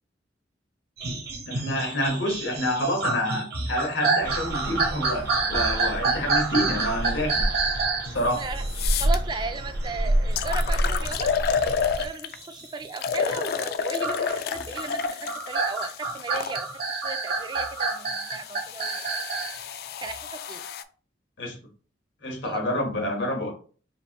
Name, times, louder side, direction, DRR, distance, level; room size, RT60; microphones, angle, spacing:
sound 1, 1.0-13.4 14.0-19.6 20.1-20.2, right 3 dB, 60° right, 1.0 m, -29 dB
voice 1, 1.5-7.5 8.1-8.5 21.4-21.6 22.2-23.5, equal, 90° left, 1.4 m, -28 dB
sound 2, 4.2-12.1, right 1 dB, 75° right, 1.1 m, -29 dB
voice 2, 8.1-8.6 9.0-11.3 11.7-19.2 20.0-20.6 22.4-22.6, right 4 dB, 25° right, 0.3 m, -36 dB
sound 3, 8.2-8.3 8.7-9.2 9.9-10.0 10.4-12.4 13.0-16.6 17.4-20.8, left 6 dB, 55° left, 0.3 m, -30 dB
5.1 x 2.6 x 2.9 m
head